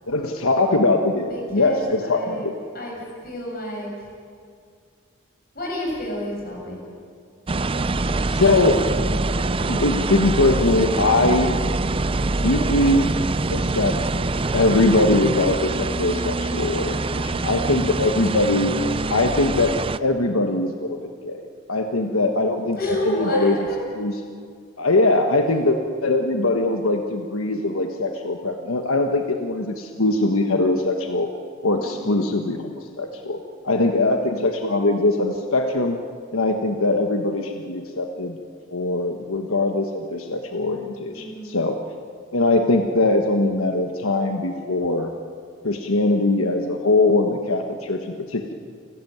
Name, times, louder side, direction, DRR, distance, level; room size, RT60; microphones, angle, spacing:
voice 1, 0.1-2.5 8.3-8.9 9.7-11.5 12.4-13.1 13.5-14.0 14.5-18.7 19.1-21.0 21.2-21.4 21.7-22.8 23.1-23.5 24.0-24.1 24.8-31.3 31.6-36.0 36.3-38.4 38.7-41.8 42.3-45.1 45.6-48.5, left 2 dB, 90° left, 4 dB, 1.4 m, -21 dB
voice 2, 1.3-4.1 5.5-6.8 22.0-22.3 22.8-23.8 25.0-25.1 25.5-25.7 31.7-32.2 33.8-34.1 41.1-41.5, left 1 dB, 45° left, -1 dB, 7.6 m, -31 dB
sound 1, 7.5-20.0, right 3 dB, 25° right, 0.5 m, -24 dB
29.5 x 13.0 x 9.4 m, 2.2 s
head